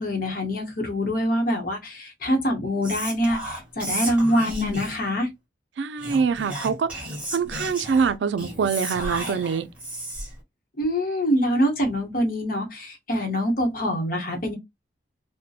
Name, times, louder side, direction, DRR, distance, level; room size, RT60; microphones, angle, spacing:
voice 1, 0.0-5.3 10.8-14.5, equal, 50° left, 0.9 m, -25 dB
Whispering, 2.8-5.1 6.0-10.4, equal, 5° right, 1.2 m, -33 dB
voice 2, 5.8-6.9 7.3-9.7, right 6 dB, 75° right, 0.3 m, -24 dB
2.6 x 2.1 x 2.3 m
head